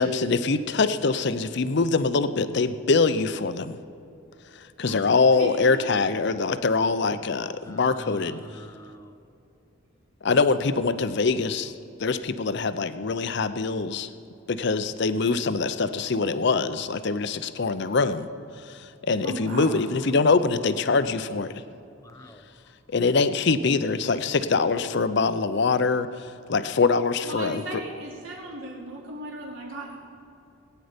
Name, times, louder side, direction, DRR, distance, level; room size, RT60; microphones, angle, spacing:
voice 1, 0.0-3.8 4.5-8.4 10.2-11.7 12.0-14.1 14.5-18.3 18.6-21.6 22.9-27.6, left 4 dB, 55° left, 12 dB, 0.6 m, -24 dB
voice 2, 7.6-9.1 19.6-19.9 22.0-22.7, equal, 15° left, 8 dB, 0.7 m, -46 dB
voice 3, 19.2-19.7 27.2-30.0, right 1 dB, 70° right, -2 dB, 2.8 m, -36 dB
20.0 x 9.3 x 5.1 m, 2.7 s
head